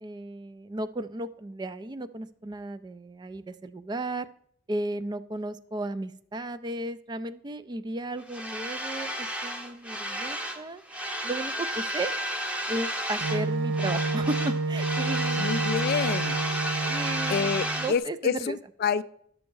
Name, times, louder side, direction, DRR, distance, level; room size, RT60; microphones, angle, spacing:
voice 1, 0.0-4.3 4.7-10.8 11.2-12.1 12.7-15.7 16.9-18.6, right 2 dB, 20° right, 0.3 m, -34 dB
sound 1, 8.3-10.6 10.9-13.5 13.7-18.0, right 1 dB, 5° right, 0.7 m, -32 dB
Wind instrument woodwind instrument, 13.2-17.9, right 3 dB, 80° right, 0.5 m, -29 dB
voice 2, 15.4-16.4 17.3-19.0, left 6 dB, 55° left, 0.3 m, -28 dB
11.5 x 6.3 x 4.6 m
head